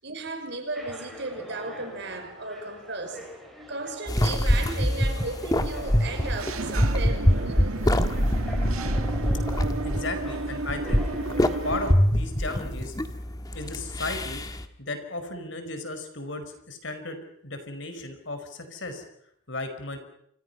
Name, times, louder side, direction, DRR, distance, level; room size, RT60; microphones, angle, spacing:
voice 1, 0.0-3.2 3.7-8.1, right 3 dB, 55° right, 5.7 m, -35 dB
sound 1, 0.7-11.9, equal, ahead, 6.2 m, -45 dB
sound 2, 4.1-14.7, equal, 20° left, 1.6 m, -25 dB
Engine / Mechanisms, 6.0-11.9, right 2 dB, 90° right, 1.7 m, -32 dB
voice 2, 9.8-13.0 13.5-14.4 14.8-19.0 19.5-20.0, left 2 dB, 60° left, 5.0 m, -35 dB
29.0 x 26.0 x 5.7 m
head